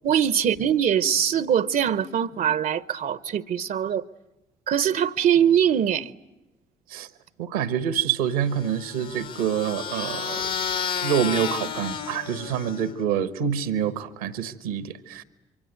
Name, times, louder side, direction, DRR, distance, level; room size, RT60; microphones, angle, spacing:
voice 1, 0.0-4.0 4.7-6.1, right 9 dB, 55° right, 0.9 m, -22 dB
voice 2, 7.4-10.5 11.0-15.2, right 8 dB, 80° right, 1.4 m, -26 dB
sound 1, 8.5-13.0, left 7 dB, 60° left, 2.1 m, -31 dB
26.5 x 24.5 x 9.3 m
hypercardioid pair, 45°, 18 cm